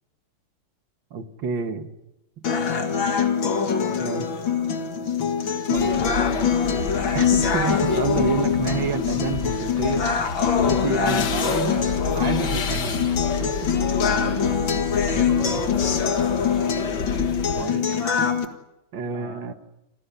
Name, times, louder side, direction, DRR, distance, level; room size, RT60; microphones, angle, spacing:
voice 1, 1.1-1.9 4.0-4.4 5.7-6.1 7.1-10.1 10.5-13.7 15.0-15.7 17.6-17.9 18.9-19.5, right 6 dB, 75° right, 8 dB, 2.4 m, -29 dB
sound 1, 2.4-18.5, left 6 dB, 85° left, 2.7 m, -23 dB
voice 2, 2.4-3.3 3.9-4.2 14.0-14.7 19.0-19.4, left 2 dB, 35° left, 2 dB, 3.6 m, -40 dB
sound 2, 5.7-17.7, left 5 dB, 65° left, 2.2 m, -30 dB
29.0 x 19.0 x 8.4 m, 0.94 s
omnidirectional pair, 2.1 m